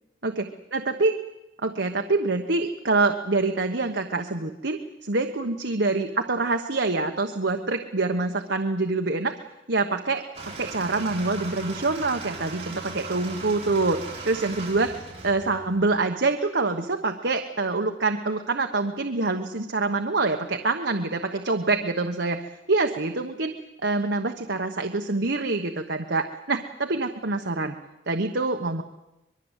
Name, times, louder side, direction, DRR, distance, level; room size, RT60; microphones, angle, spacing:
voice 1, 0.2-1.1 1.6-9.3 9.7-14.0 14.3-15.0 15.2-22.4 22.7-23.5 23.8-27.8 28.1-28.8, right 3 dB, 65° right, 4 dB, 1.2 m, -26 dB
sound 1, 10.3-16.0, right 3 dB, 30° right, 7.6 m, -38 dB
24.5 x 22.0 x 8.2 m, 0.96 s
head